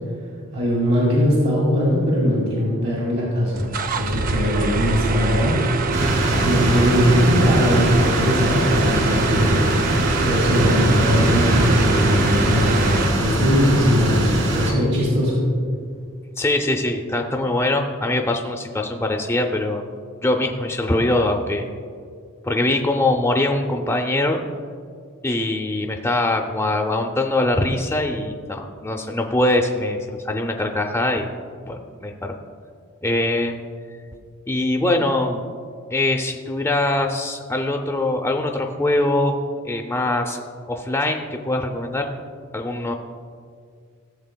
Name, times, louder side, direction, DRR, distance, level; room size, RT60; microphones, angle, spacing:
voice 1, 0.5-3.7 4.0-5.6 6.4-9.6 10.2-15.4, equal, 80° right, -7 dB, 2.2 m, -20 dB
sound 1, 3.5-13.1, right 3 dB, 40° right, 0.4 m, -24 dB
sound 2, 5.9-14.7, right 1 dB, 60° right, 1.9 m, -21 dB
voice 2, 16.4-19.8 20.2-21.7 22.4-24.4 25.2-31.3 31.7-32.4 33.0-33.6 34.5-35.4 35.9-39.4 39.6-40.4 40.7-42.1 42.5-42.9, left 2 dB, 10° left, 2 dB, 0.5 m, -22 dB
16.0 x 7.2 x 2.2 m, 2.1 s
head